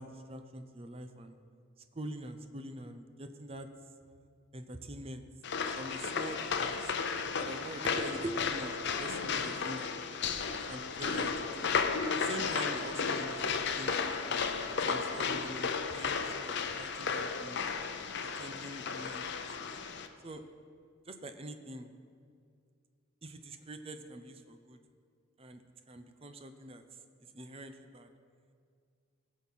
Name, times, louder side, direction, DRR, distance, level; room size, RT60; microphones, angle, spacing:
voice 1, 0.0-1.4 1.9-3.7 4.5-5.2 5.7-6.9 7.4-9.9 10.6-11.7 12.1-14.2 14.8-17.6 18.4-19.7 20.2-20.4 21.1-21.9 23.2-24.8 25.4-25.6 25.9-26.8 27.3-28.1, right 1 dB, 30° right, 8 dB, 0.7 m, -44 dB
sound 1, 5.4-20.1, left 5 dB, 55° left, 0.7 m, -34 dB
17.0 x 6.5 x 5.6 m, 2.2 s
head